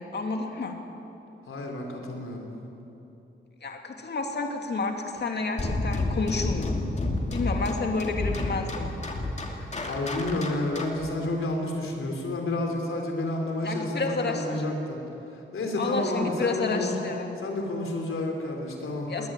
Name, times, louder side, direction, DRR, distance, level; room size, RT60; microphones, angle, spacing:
voice 1, 0.1-0.8 3.6-6.8 7.3-8.9 13.6-14.6 15.8-17.3 19.1-19.3, left 3 dB, 55° left, 3 dB, 2.5 m, -30 dB
voice 2, 1.5-2.5 9.6-15.0 15.5-16.9 17.4-19.3, left 2 dB, 85° left, 2 dB, 4.0 m, -30 dB
sound 1, 5.6-11.1, left 2 dB, 35° left, 2.3 m, -30 dB
21.0 x 19.0 x 9.2 m, 2.9 s
wide cardioid pair, 180°, 21 cm